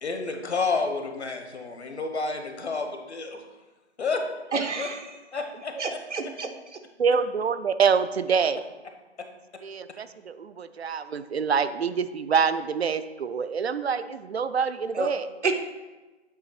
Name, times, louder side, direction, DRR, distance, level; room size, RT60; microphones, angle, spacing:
voice 1, 0.0-3.4 4.0-4.2 4.8-4.9 5.3-6.0 9.2-9.3, left 4 dB, 70° left, 5 dB, 1.1 m, -30 dB
voice 2, 4.5-5.2 5.8-6.8 14.9-15.1 15.4-15.5, right 4 dB, 90° right, 5 dB, 1.0 m, -29 dB
voice 3, 7.0-8.6 9.6-15.3, right 6 dB, 65° right, 13 dB, 0.4 m, -26 dB
8.1 x 2.9 x 5.8 m, 1.2 s
hypercardioid pair, 175°, 34 cm